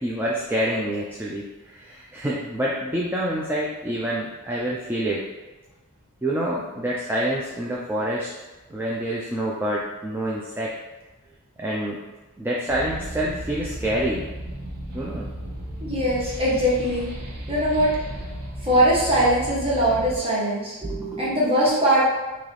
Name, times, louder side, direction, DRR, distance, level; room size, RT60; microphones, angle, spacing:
voice 1, 0.0-5.2 6.2-8.3 8.7-10.7 11.6-12.0 12.4-14.2 14.9-15.3 18.6-18.8 20.8-21.5, right 1 dB, 10° right, -5 dB, 0.3 m, -27 dB
sound 1, 12.7-20.2, right 1 dB, 80° right, 0.8 m, -34 dB
voice 2, 15.8-17.1 17.5-17.9 18.6-20.7 21.2-22.0, equal, 25° right, -8 dB, 1.3 m, -21 dB
3.9 x 2.8 x 3.1 m, 1.2 s
head